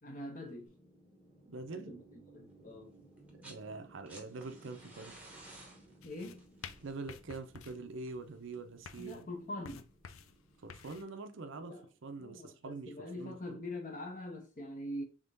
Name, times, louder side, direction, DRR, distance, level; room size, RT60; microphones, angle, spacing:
voice 1, 0.0-0.7 1.7-2.0 2.3-3.0 6.0-6.4 9.0-9.8 11.5-11.9 12.2-15.0, left 1 dB, 40° left, 0.8 m, -43 dB
sound 1, 0.7-12.8, right 2 dB, 15° left, 1.2 m, -62 dB
voice 2, 1.5-1.9 3.3-5.2 6.8-9.3 10.6-11.8 12.0-13.6, right 3 dB, 70° right, 0.6 m, -44 dB
sound 2, 3.2-3.7 3.9-8.8 10.0-10.1, right 2 dB, 5° right, 0.9 m, -56 dB
sound 3, 6.0-11.0, left 7 dB, 85° left, 0.4 m, -52 dB
3.6 x 3.5 x 2.6 m
head